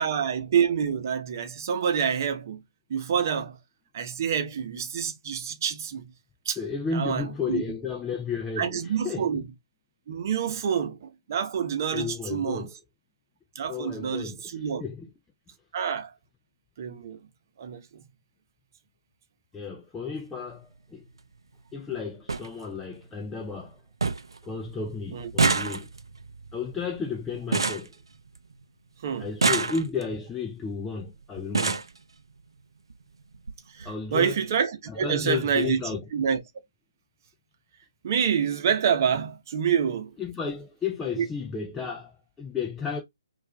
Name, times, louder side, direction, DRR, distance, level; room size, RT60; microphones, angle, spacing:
voice 1, 0.0-2.6 2.9-3.6 3.9-6.1 6.5-6.6 6.9-7.6 8.6-9.4 10.1-12.7 13.6-14.8 15.7-16.1 16.8-17.2 17.6-17.8 25.1-25.3 29.0-29.3 33.8-34.7 35.0-35.8 36.1-36.4 38.0-40.1 41.2-41.3, right 7 dB, 45° right, 0.8 m, -27 dB
voice 2, 6.6-9.4 11.9-12.8 13.7-15.1 19.5-21.0 21.7-23.8 24.4-25.9 26.5-27.9 29.2-31.8 33.8-34.4 34.9-36.1 40.2-43.0, left 5 dB, 10° left, 0.4 m, -33 dB
sound 1, 20.1-20.4 21.6-21.7 21.9-22.0 22.3-22.5 22.9-23.4 23.7-23.8 24.0-24.4 24.7-28.6 29.2-30.2 31.0-31.1 31.4-32.0 32.9-33.0 33.3-33.5 33.8-33.9, right 4 dB, 85° right, 0.5 m, -28 dB
4.5 x 2.5 x 2.2 m
hypercardioid pair, 150°, 2 cm